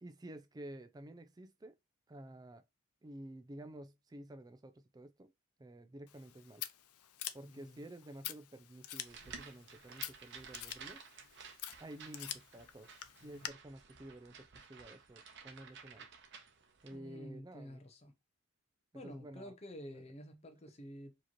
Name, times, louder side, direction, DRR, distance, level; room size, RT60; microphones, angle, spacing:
voice 1, 0.0-1.7 2.1-2.6 3.0-5.3 5.6-6.6 7.3-11.0 11.8-12.9 13.2-16.1 16.8-17.8 19.0-19.5 19.9-20.0, right 1 dB, 15° right, 0.4 m, -51 dB
Scissors, 6.1-13.5, left 12 dB, 80° left, 0.5 m, -47 dB
voice 2, 7.5-7.9 16.9-18.1 18.9-21.2, equal, 30° left, 0.6 m, -50 dB
sound 1, 9.1-17.0, right 6 dB, 55° right, 0.8 m, -54 dB
4.8 x 2.9 x 2.9 m
head